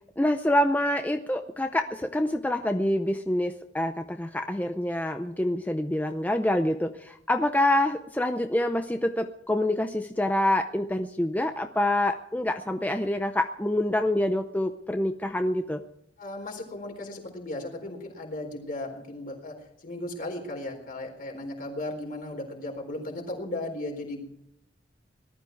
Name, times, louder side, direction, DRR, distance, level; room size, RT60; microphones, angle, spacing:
voice 1, 0.2-15.8, left 1 dB, 10° left, 6 dB, 0.6 m, -26 dB
voice 2, 16.2-24.3, left 1 dB, 50° left, 3 dB, 4.2 m, -36 dB
19.0 x 12.5 x 4.6 m, 0.77 s
head